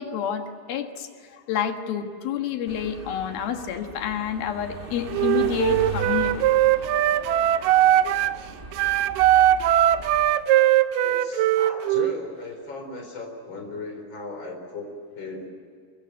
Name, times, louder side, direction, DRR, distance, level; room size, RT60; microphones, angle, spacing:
voice 1, 0.0-6.4, left 8 dB, 80° left, 6 dB, 3.4 m, -29 dB
sound 1, 2.7-10.4, right 2 dB, 30° right, 1.0 m, -39 dB
Wind instrument woodwind instrument, 5.1-8.4 8.7-12.1, right 12 dB, 75° right, 2.1 m, -20 dB
voice 2, 11.0-15.5, left 3 dB, 30° left, 4 dB, 4.6 m, -37 dB
24.0 x 22.0 x 9.0 m, 2.3 s
omnidirectional pair, 4.3 m